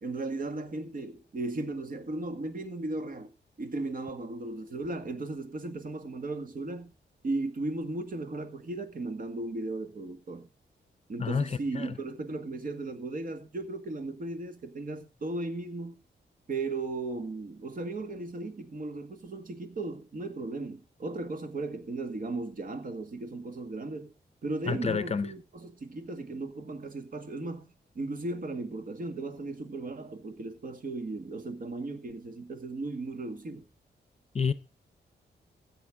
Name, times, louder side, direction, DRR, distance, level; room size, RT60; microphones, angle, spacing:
voice 1, 0.0-3.3 3.6-6.9 7.2-10.5 11.1-16.0 16.5-24.1 24.4-27.7 28.0-33.6, right 2 dB, 50° right, 1.9 m, -36 dB
voice 2, 24.7-25.3 34.3-34.5, left 5 dB, 35° left, 0.7 m, -28 dB
15.5 x 7.9 x 3.7 m
wide cardioid pair, 155°, 19 cm